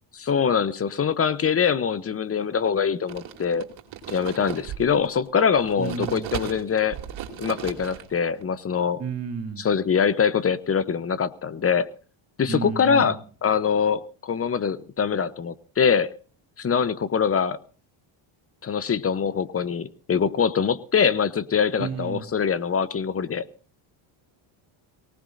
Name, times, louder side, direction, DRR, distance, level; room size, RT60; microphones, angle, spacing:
voice 1, 0.2-3.7 4.1-7.0 7.4-9.0 9.6-11.9 12.4-16.1 16.6-17.6 18.6-23.5, left 6 dB, 30° left, 0.8 m, -23 dB
sound 1, 3.1-5.3 5.6-8.4, right 9 dB, 65° right, 3.0 m, -36 dB
voice 2, 5.8-6.4 9.0-9.6 12.5-13.2 21.8-22.3, right 6 dB, 30° right, 2.2 m, -31 dB
23.0 x 18.5 x 2.6 m
cardioid pair, 130°, 49 cm